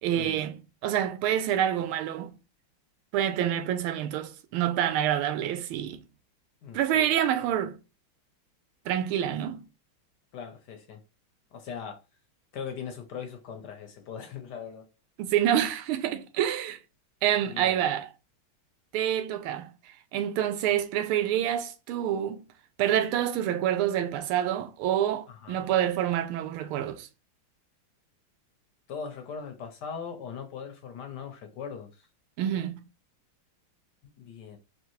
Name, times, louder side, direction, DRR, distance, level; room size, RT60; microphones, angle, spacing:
voice 1, 0.0-2.3 3.1-6.0 6.7-7.8 8.9-9.6 15.2-16.8 17.2-18.1 18.9-19.7 20.1-22.4 22.8-27.1 32.4-32.8, right 11 dB, 90° right, 1.5 m, -27 dB
voice 2, 6.6-7.2 10.3-11.0 11.5-12.0 12.5-14.9 17.5-17.7 25.3-25.7 28.9-32.1 34.2-34.6, left 6 dB, 65° left, 1.1 m, -40 dB
4.6 x 2.7 x 3.0 m
omnidirectional pair, 2.3 m